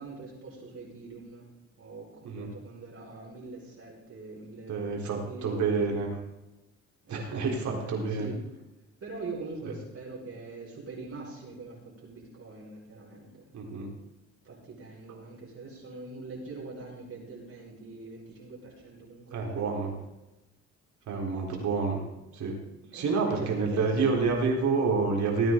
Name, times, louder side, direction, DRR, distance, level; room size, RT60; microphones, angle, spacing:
voice 1, 0.0-1.4 1.8-5.0 5.2-5.9 7.1-8.4 9.0-13.5 14.4-19.8 22.9-24.3, right 3 dB, 50° right, -3 dB, 5.5 m, -43 dB
voice 2, 4.7-6.1 7.1-8.3 13.5-13.9 19.3-20.0 21.1-22.0 22.3-22.6 22.9-25.5, right 4 dB, 70° right, 0 dB, 3.9 m, -28 dB
18.0 x 9.4 x 3.9 m, 0.97 s
cardioid pair, 90°, 30 cm